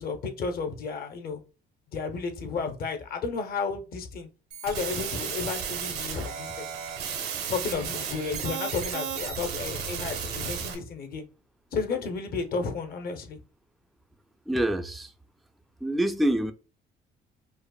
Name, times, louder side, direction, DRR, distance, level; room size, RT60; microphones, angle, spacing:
voice 1, 0.0-1.4 1.9-4.3 4.6-6.7 7.5-11.3 11.7-13.4, left 5 dB, 60° left, 0.8 m, -32 dB
sound 1, 4.5-10.7, right 7 dB, 75° right, 0.9 m, -34 dB
voice 2, 14.5-15.1 15.8-16.5, right 1 dB, ahead, 0.3 m, -26 dB
5.1 x 2.1 x 2.3 m
cardioid pair, 110°, 17 cm